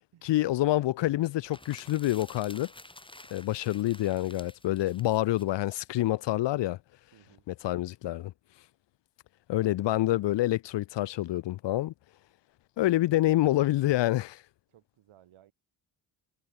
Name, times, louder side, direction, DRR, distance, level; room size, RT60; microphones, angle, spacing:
voice 1, 0.2-2.7 3.3-6.8 7.5-8.3 9.5-11.9 12.8-14.4, left 15 dB, 60° left, 0.6 m, -27 dB
sound 1, 1.3-6.0, left 1 dB, 10° left, 4.3 m, -51 dB
voice 2, 7.1-7.5 12.8-13.1 14.7-15.5, right 12 dB, 80° right, 4.0 m, -60 dB
cardioid pair, 75°, 49 cm